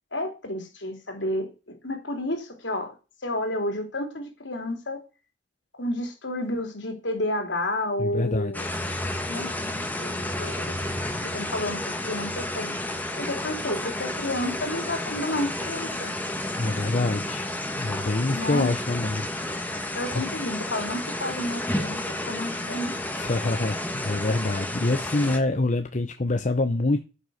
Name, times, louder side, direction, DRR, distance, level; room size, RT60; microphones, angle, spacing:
voice 1, 0.1-3.0 3.2-5.0 5.8-8.6 9.2-10.8 11.2-12.7 13.2-16.1 18.3-18.7 19.9-23.2, left 1 dB, 70° left, 3.7 m, -31 dB
voice 2, 8.0-8.7 16.6-17.5 17.8-19.3 19.7-20.2 23.2-27.0, left 2 dB, 45° left, 0.9 m, -26 dB
sound 1, 8.5-25.4, left 1 dB, 10° left, 1.8 m, -31 dB
11.5 x 9.2 x 6.5 m
head